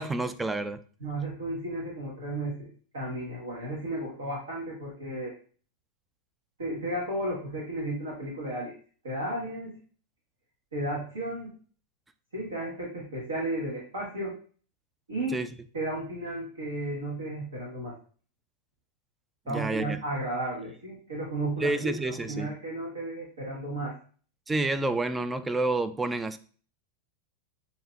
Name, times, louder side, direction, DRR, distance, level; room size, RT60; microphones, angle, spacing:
voice 1, 0.0-0.8 15.3-15.5 19.5-20.0 21.6-22.5 24.5-26.4, right 2 dB, 10° right, 11 dB, 0.3 m, -29 dB
voice 2, 1.0-5.3 6.6-8.7 9.0-9.8 10.7-11.5 12.3-14.3 15.1-15.4 15.7-18.0 19.5-24.0, right 1 dB, 70° right, -4 dB, 1.3 m, -33 dB
7.0 x 2.7 x 2.3 m, 0.42 s
figure-of-eight pair, 90°, 0 cm